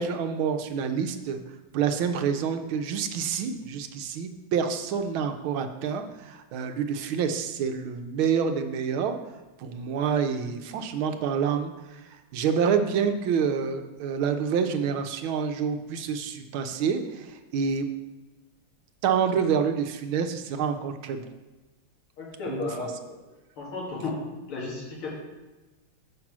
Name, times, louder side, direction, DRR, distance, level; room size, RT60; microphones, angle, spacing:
voice 1, 0.0-1.4 1.7-9.2 9.6-11.7 12.3-17.9 19.0-21.2 22.5-22.9, right 7 dB, 75° right, 7 dB, 1.5 m, -27 dB
voice 2, 22.2-23.2 23.6-24.2 24.5-25.1, left 3 dB, 85° left, -4 dB, 3.0 m, -34 dB
7.5 x 6.0 x 6.0 m, 1.2 s
omnidirectional pair, 2.3 m